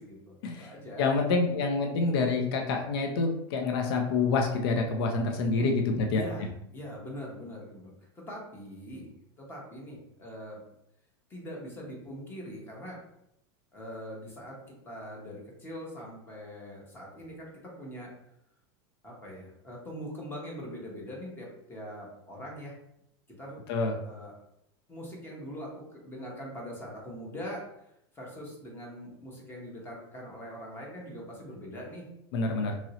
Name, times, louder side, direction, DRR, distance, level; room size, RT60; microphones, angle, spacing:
voice 1, 0.0-1.2 6.1-9.1 9.4-10.6 11.3-13.0 13.7-14.5 14.9-18.1 19.0-22.7 23.4-23.6 24.0-24.3 24.9-27.9 28.1-32.1, equal, 15° left, -2 dB, 0.9 m, -42 dB
voice 2, 1.0-6.2 23.7-23.9 32.3-32.8, left 3 dB, 65° left, 3 dB, 0.6 m, -27 dB
3.0 x 2.7 x 2.7 m, 0.79 s
supercardioid pair, 155°, 14 cm